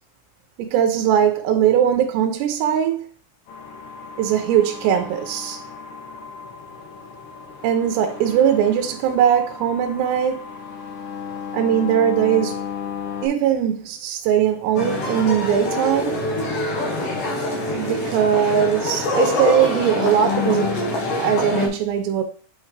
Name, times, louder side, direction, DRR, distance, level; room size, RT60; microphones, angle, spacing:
voice 1, 0.6-3.1 4.2-5.6 7.6-10.5 11.5-12.7 13.2-16.3 17.8-20.7 21.2-22.2, right 9 dB, 80° right, 2.7 m, -20 dB
sound 1, 3.5-13.3, left 6 dB, 80° left, 4.1 m, -35 dB
sound 2, 14.8-21.7, left 2 dB, 60° left, 2.7 m, -24 dB
8.3 x 4.6 x 3.2 m
omnidirectional pair, 5.0 m